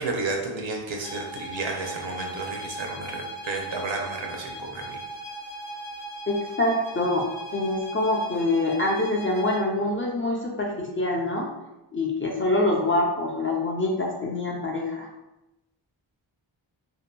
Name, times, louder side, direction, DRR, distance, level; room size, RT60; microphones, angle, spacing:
voice 1, 0.0-5.0, right 3 dB, 65° right, 1 dB, 0.6 m, -32 dB
sound 1, 1.0-9.7, right 1 dB, 70° left, 0.7 m, -38 dB
voice 2, 6.3-7.3 7.5-11.5 11.9-15.1, left 2 dB, 25° left, -2 dB, 0.4 m, -25 dB
2.8 x 2.5 x 2.2 m, 0.96 s
wide cardioid pair, 95°, 49 cm